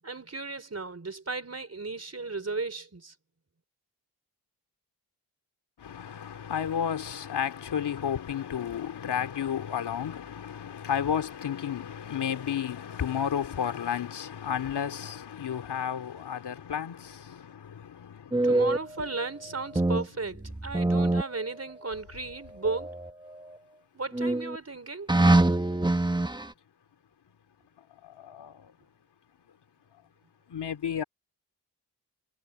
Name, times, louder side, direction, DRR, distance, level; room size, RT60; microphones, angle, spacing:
voice 1, 0.0-3.1 18.4-23.0 23.9-25.1, right 3 dB, 40° right, 4.1 m, -35 dB
voice 2, 5.8-18.6 19.0-19.1 27.8-28.7 30.5-31.0, left 8 dB, 90° left, 2.6 m, -32 dB
sound 1, 18.3-20.1 20.4-21.9 22.6-23.6 24.1-24.6 25.1-26.5, right 2 dB, 10° right, 1.1 m, -25 dB
cardioid pair, 45°, 39 cm